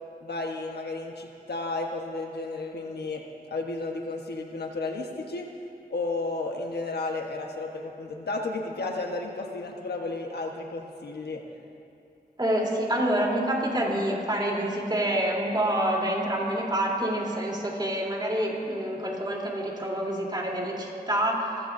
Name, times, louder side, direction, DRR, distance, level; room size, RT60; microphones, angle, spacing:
voice 1, 0.2-3.2 3.5-5.5 5.9-11.4, left 3 dB, 90° left, 2 dB, 1.3 m, -33 dB
voice 2, 12.4-21.5, right 1 dB, 25° right, -2 dB, 3.5 m, -27 dB
25.5 x 15.5 x 2.7 m, 2.8 s
wide cardioid pair, 70°, 16 cm